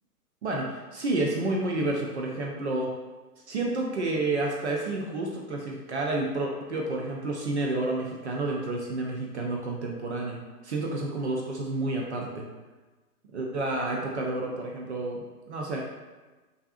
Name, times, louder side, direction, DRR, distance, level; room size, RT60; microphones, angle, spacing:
voice 1, 0.4-2.9 3.5-10.4 10.6-12.4 13.3-15.8, right 2 dB, 45° right, -1 dB, 0.6 m, -30 dB
5.4 x 2.8 x 2.4 m, 1.2 s
figure-of-eight pair, 115°, 47 cm